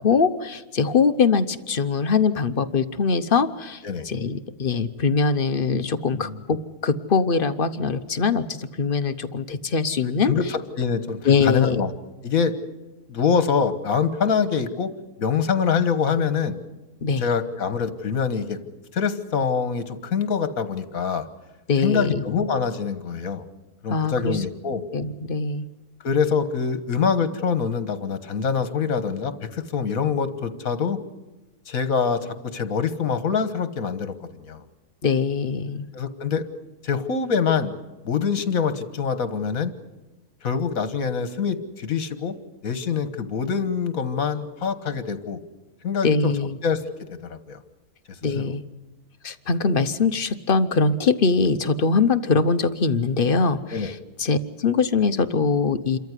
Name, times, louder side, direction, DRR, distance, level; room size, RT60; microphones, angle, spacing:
voice 1, 0.0-6.6 6.8-10.3 11.2-11.8 17.0-17.3 21.7-22.2 23.9-24.4 24.9-25.7 35.0-35.9 46.0-46.6 48.2-48.6 49.2-56.0, left 4 dB, 45° left, 10 dB, 0.9 m, -22 dB
voice 2, 10.3-11.9 12.2-12.5 13.1-14.9 15.2-16.6 17.2-18.6 18.9-21.3 21.8-23.4 23.8-24.8 26.0-31.0 31.7-34.6 35.9-36.5 36.8-37.7 38.1-39.7 40.4-42.3 42.6-45.4 45.8-46.3 46.6-46.8 47.2-47.6 48.3-48.5 53.7-53.9, left 6 dB, 70° left, 11 dB, 1.7 m, -25 dB
27.5 x 14.0 x 9.8 m, 1.1 s
omnidirectional pair, 1.6 m